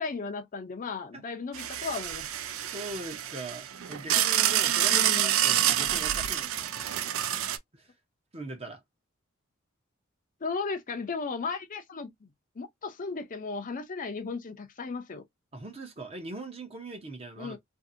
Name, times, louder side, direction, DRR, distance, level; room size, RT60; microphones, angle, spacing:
voice 1, 0.0-2.3 4.8-5.4 10.4-12.3 12.6-15.2 17.4-17.6, left 4 dB, 40° left, 0.5 m, -35 dB
sound 1, 1.5-7.6, right 11 dB, 70° right, 0.4 m, -27 dB
voice 2, 2.4-6.7 7.7-7.9 8.3-8.8 15.5-17.6, right 2 dB, 30° right, 0.8 m, -41 dB
2.6 x 2.6 x 2.5 m
head